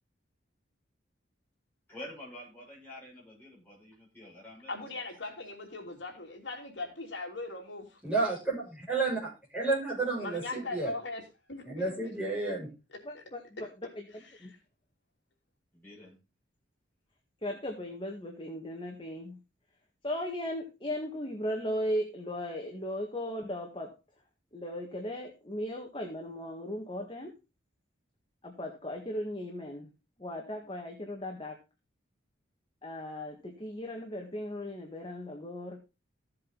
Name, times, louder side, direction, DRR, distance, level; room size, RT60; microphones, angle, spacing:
voice 1, 1.9-4.7 5.8-5.9 15.7-16.2, left 1 dB, 10° left, -5 dB, 6.8 m, -48 dB
voice 2, 4.7-8.0 10.2-11.2 11.5-11.9 13.1-13.2 14.3-14.5, left 3 dB, 70° left, 1 dB, 3.0 m, -39 dB
voice 3, 8.0-9.2 9.5-10.9 11.7-12.7, right 3 dB, 5° right, -6 dB, 7.6 m, -31 dB
voice 4, 13.0-13.7 14.0-14.5 17.4-19.4 20.0-23.9 24.5-27.3 28.4-29.9 30.2-31.6 32.8-35.8, equal, 25° left, 1 dB, 1.7 m, -37 dB
15.0 x 7.8 x 4.1 m, 0.28 s
head